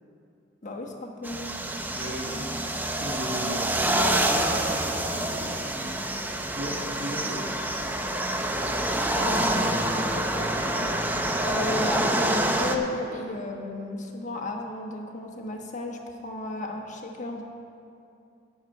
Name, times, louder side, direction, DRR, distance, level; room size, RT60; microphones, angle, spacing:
voice 1, 0.6-1.5 9.1-10.9 11.4-17.4, left 2 dB, 45° left, 1 dB, 1.2 m, -34 dB
sound 1, 1.2-12.8, right 1 dB, 10° right, 0.6 m, -27 dB
voice 2, 1.9-6.0 6.4-7.5 11.7-11.8, equal, 70° right, -2 dB, 2.0 m, -36 dB
11.5 x 9.1 x 4.7 m, 2.6 s
head